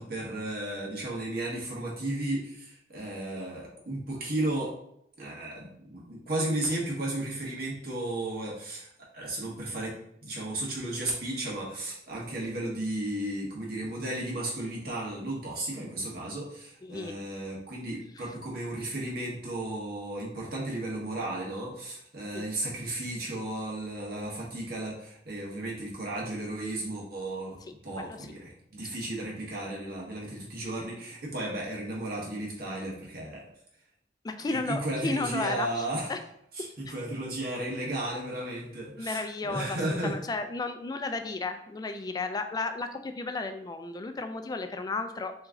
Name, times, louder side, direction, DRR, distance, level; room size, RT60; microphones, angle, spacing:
voice 1, 0.0-4.7 5.2-33.5 34.5-36.1 36.5-40.2, right 1 dB, 60° right, -4 dB, 1.3 m, -34 dB
voice 2, 16.8-17.2 22.3-22.5 28.0-28.2 34.2-36.2 36.9-37.0 39.0-45.3, left 3 dB, 20° left, 8 dB, 0.3 m, -33 dB
3.5 x 3.1 x 3.7 m, 0.74 s
head